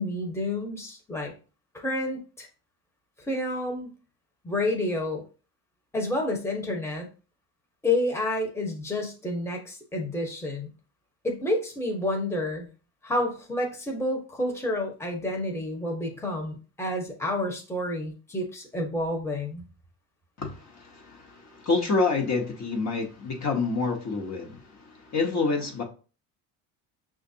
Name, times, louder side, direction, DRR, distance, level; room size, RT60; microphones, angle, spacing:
voice 1, 0.0-1.3 1.7-2.5 3.3-3.9 4.4-5.2 5.9-7.1 7.8-10.7 11.2-12.7 13.0-19.6, left 1 dB, 5° left, 1 dB, 1.1 m, -29 dB
voice 2, 20.4-25.8, left 4 dB, 45° left, 1 dB, 1.2 m, -28 dB
5.7 x 2.5 x 2.8 m, 0.36 s
supercardioid pair, 80°, 39 cm